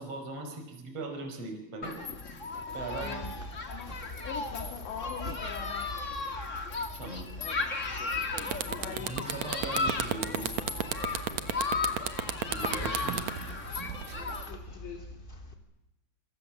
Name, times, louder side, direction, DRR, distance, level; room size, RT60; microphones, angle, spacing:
voice 1, 0.0-2.0 2.7-3.4 6.9-7.3 9.1-10.5 12.5-13.2, right 3 dB, 35° right, 4 dB, 5.4 m, -39 dB
Human group actions, 1.8-14.5, left 4 dB, 45° left, 0.9 m, -36 dB
sound 1, 2.5-15.5, left 1 dB, 15° left, 1.9 m, -44 dB
voice 2, 3.0-3.3 3.7-3.9 4.2-6.3 8.4-9.4 11.5-11.8 14.5-15.1, left 7 dB, 75° left, 3 dB, 4.5 m, -43 dB
sound 2, 7.9-8.0 8.3-14.4, right 10 dB, 70° right, 1.6 m, -32 dB
28.5 x 26.5 x 7.2 m, 0.94 s
omnidirectional pair, 5.1 m